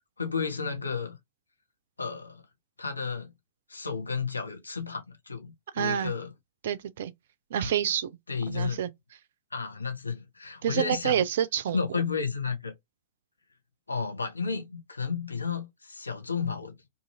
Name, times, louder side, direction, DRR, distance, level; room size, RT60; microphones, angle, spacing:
voice 1, 0.2-1.2 2.0-2.4 2.8-3.3 3.7-6.3 7.6-7.7 8.3-8.8 9.5-11.2 11.7-12.7 13.9-16.8, left 5 dB, 80° left, 0.9 m, -32 dB
voice 2, 5.7-6.1 6.6-7.1 7.5-8.2 8.5-8.9 10.6-12.0, right 10 dB, 55° right, 0.4 m, -28 dB
2.6 x 2.5 x 2.7 m
figure-of-eight pair, 105°, 0 cm